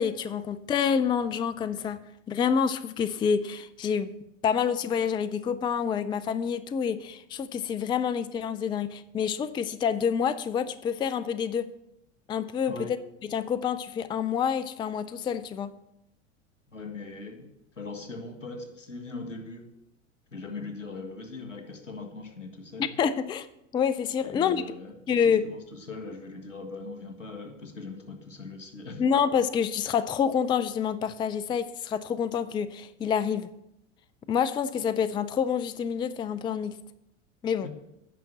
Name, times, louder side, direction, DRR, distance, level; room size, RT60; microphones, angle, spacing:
voice 1, 0.0-2.0 2.3-4.1 4.4-11.7 12.3-12.7 13.3-15.7 23.0-23.5 23.7-24.6 25.1-25.5 29.0-33.5 34.3-36.8 37.4-37.7, left 7 dB, 15° left, 14 dB, 0.4 m, -27 dB
voice 2, 16.7-17.5 17.8-19.7 20.3-22.9 24.2-29.0 37.6-37.7, left 3 dB, 90° left, 4 dB, 1.7 m, -40 dB
9.2 x 5.8 x 7.4 m, 0.82 s
figure-of-eight pair, 80°, 37 cm